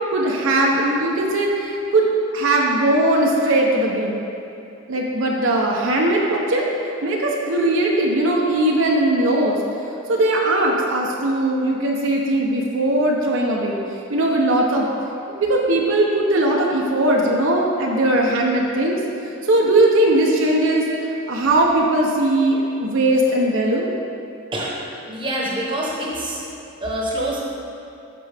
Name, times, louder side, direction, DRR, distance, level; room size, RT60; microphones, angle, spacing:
voice 1, 0.1-2.1 2.3-4.2 4.9-6.7 7.0-9.6 10.1-14.9 15.3-19.0 19.4-23.9, right 1 dB, 65° right, -2 dB, 0.7 m, -19 dB
voice 2, 25.0-26.4 26.8-27.4, right 1 dB, 20° right, -4 dB, 1.0 m, -25 dB
12.0 x 4.6 x 3.4 m, 2.7 s
head